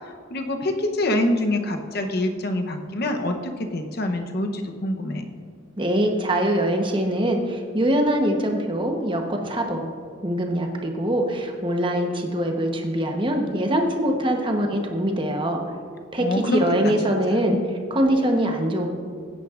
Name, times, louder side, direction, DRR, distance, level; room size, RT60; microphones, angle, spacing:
voice 1, 0.0-5.2 16.2-17.4, left 1 dB, 50° left, 5 dB, 0.8 m, -26 dB
voice 2, 5.8-9.9 10.2-15.6 16.1-17.6 17.9-18.9, right 1 dB, 25° right, 3 dB, 1.0 m, -23 dB
16.5 x 9.2 x 2.5 m, 2.1 s
head